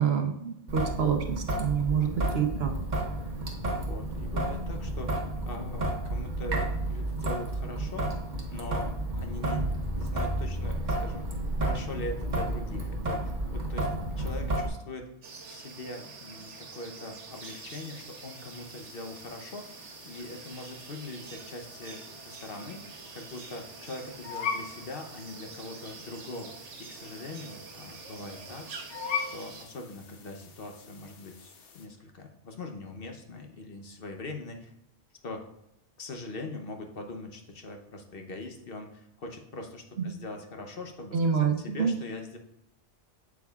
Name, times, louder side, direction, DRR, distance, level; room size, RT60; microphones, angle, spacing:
voice 1, 0.0-2.7 40.0-40.1 41.1-41.9, right 7 dB, 60° right, 5 dB, 1.1 m, -27 dB
Traffic noise roadway noise / Drip / Trickle dribble, 0.7-14.7, right 1 dB, 40° right, 1.2 m, -31 dB
voice 2, 2.0-2.7 3.8-5.1 5.5-8.1 8.5-13.9 14.2-15.1 15.5-28.7 29.1-34.7 35.2-35.5 36.0-42.4, left 2 dB, 55° left, 4 dB, 1.0 m, -42 dB
sound 1, 15.2-29.7, right 4 dB, 80° right, 1.3 m, -46 dB
sound 2, 17.3-31.9, left 6 dB, 80° left, 1.2 m, -42 dB
8.2 x 7.2 x 2.4 m, 0.83 s
omnidirectional pair, 1.2 m